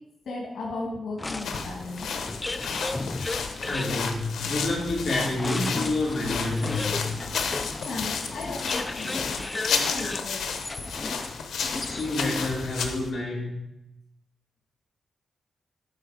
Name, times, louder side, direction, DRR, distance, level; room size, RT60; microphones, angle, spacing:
voice 1, 0.2-2.1 7.8-10.5, left 2 dB, 75° left, -3 dB, 1.6 m, -36 dB
sound 1, 1.2-13.1, left 6 dB, 90° left, 0.8 m, -32 dB
sound 2, 1.2-12.5, left 2 dB, 20° left, 0.4 m, -35 dB
voice 2, 3.7-7.0 9.0-9.1 11.9-13.6, left 2 dB, 40° left, -3 dB, 2.4 m, -28 dB
8.5 x 5.0 x 4.8 m, 0.90 s
wide cardioid pair, 120°, 0 cm